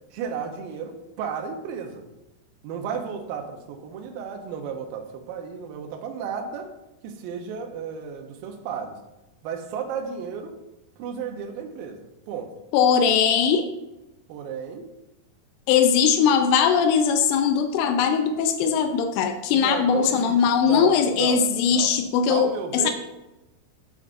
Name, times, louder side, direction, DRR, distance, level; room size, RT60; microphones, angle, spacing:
voice 1, 0.1-2.1 2.6-6.7 7.0-9.0 9.4-10.6 11.0-12.5 14.3-14.8 19.5-21.4 21.7-21.9 22.3-22.9, right 6 dB, 75° right, 4 dB, 2.3 m, -33 dB
voice 2, 12.7-13.7 15.7-22.9, left 7 dB, 90° left, 6 dB, 2.7 m, -20 dB
9.3 x 7.2 x 2.6 m, 0.98 s
omnidirectional pair, 4.6 m